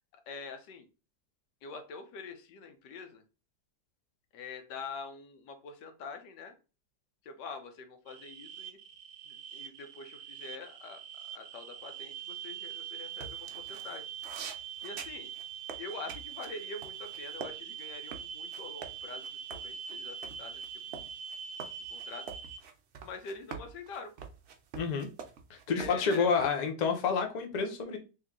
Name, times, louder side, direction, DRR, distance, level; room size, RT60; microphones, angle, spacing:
voice 1, 0.3-0.9 1.6-3.2 4.3-6.5 7.2-8.8 9.3-11.0 11.3-14.1 14.8-15.3 15.8-21.1 21.9-22.3 23.0-24.1 25.8-26.3, left 4 dB, 85° left, 7 dB, 1.4 m, -45 dB
sound 1, 8.1-22.6, right 8 dB, 85° right, 1.3 m, -43 dB
sound 2, 13.1-17.5 17.8-26.5, right 6 dB, 70° right, 0.6 m, -46 dB
voice 2, 24.8-25.1 25.5-28.0, left 5 dB, 65° left, 4 dB, 0.4 m, -29 dB
3.2 x 3.0 x 3.6 m, 0.32 s
omnidirectional pair, 1.8 m